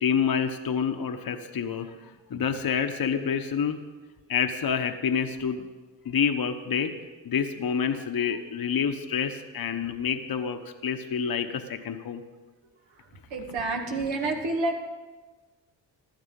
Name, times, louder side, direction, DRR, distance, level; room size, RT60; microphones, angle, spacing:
voice 1, 0.0-1.9 2.3-3.8 4.3-5.6 6.0-6.9 7.2-12.2, left 7 dB, 50° left, 7 dB, 1.2 m, -28 dB
voice 2, 13.3-14.8, right 2 dB, 75° right, 2 dB, 2.3 m, -28 dB
16.0 x 11.5 x 5.3 m, 1.3 s
supercardioid pair, 60°, 46 cm